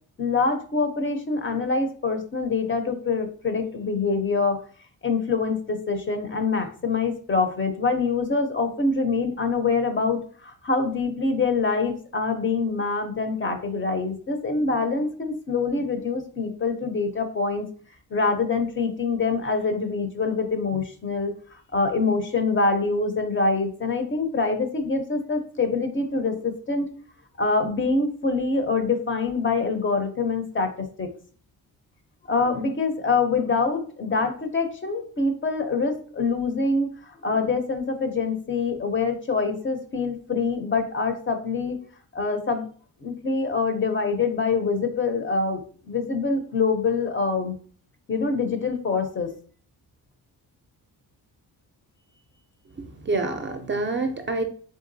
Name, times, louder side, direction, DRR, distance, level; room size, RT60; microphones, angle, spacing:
voice 1, 0.2-4.6 5.0-17.7 18.1-26.9 27.4-31.1 32.3-41.8 42.1-42.6 43.0-47.6 48.1-49.3, left 4 dB, 30° left, 7 dB, 0.5 m, -25 dB
voice 2, 52.8-54.4, right 3 dB, 30° right, 6 dB, 0.4 m, -27 dB
3.7 x 3.4 x 2.6 m, 0.44 s
wide cardioid pair, 125°, 38 cm